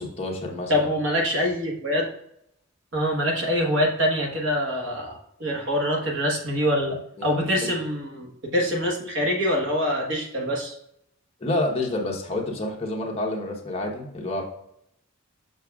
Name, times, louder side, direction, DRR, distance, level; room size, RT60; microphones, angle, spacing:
voice 1, 0.0-0.9 7.2-7.7 11.4-14.4, left 2 dB, 25° left, 0 dB, 1.0 m, -29 dB
voice 2, 0.7-2.1 2.9-10.8, equal, 55° right, -1 dB, 1.2 m, -25 dB
6.7 x 5.9 x 2.4 m, 0.77 s
head